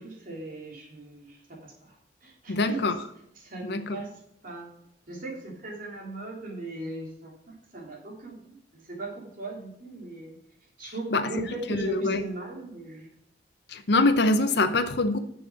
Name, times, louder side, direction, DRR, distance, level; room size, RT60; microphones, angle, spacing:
voice 1, 0.0-1.9 2.2-2.8 3.4-4.1 4.4-4.7 5.1-7.3 7.7-10.3 10.8-13.1, right 2 dB, 50° right, -2 dB, 3.3 m, -38 dB
voice 2, 2.5-3.0 3.6-4.0 10.8-11.4 11.7-12.2 13.7-15.2, left 2 dB, 60° left, 8 dB, 0.7 m, -25 dB
7.1 x 7.0 x 6.3 m, 0.76 s
head